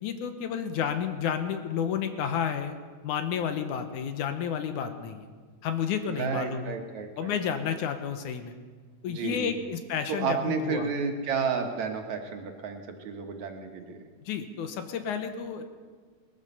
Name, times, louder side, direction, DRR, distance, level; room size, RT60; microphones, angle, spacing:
voice 1, 0.0-2.7 3.0-5.3 5.6-6.8 7.2-8.5 9.0-10.9 14.2-15.6, left 7 dB, 75° left, 7 dB, 2.3 m, -31 dB
voice 2, 6.1-7.4 9.1-9.6 10.1-14.0, right 5 dB, 65° right, 4 dB, 2.5 m, -31 dB
20.0 x 13.5 x 5.4 m, 1.5 s
omnidirectional pair, 3.7 m